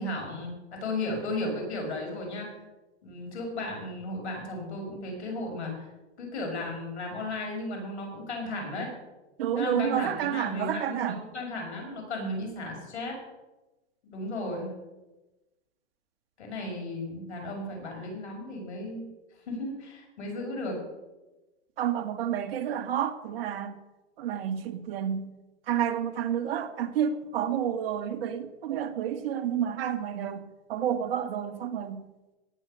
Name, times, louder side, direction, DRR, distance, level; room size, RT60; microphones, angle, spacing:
voice 1, 0.0-2.5 3.0-5.9 6.2-8.9 9.5-13.2 14.1-14.7 16.4-19.1 19.5-20.8, left 2 dB, 80° left, 1 dB, 6.2 m, -35 dB
voice 2, 9.4-11.2 21.8-23.8 24.2-25.3 25.7-32.0, right 9 dB, 60° right, 9 dB, 1.7 m, -30 dB
17.5 x 7.7 x 6.7 m, 1.1 s
hypercardioid pair, 135°, 33 cm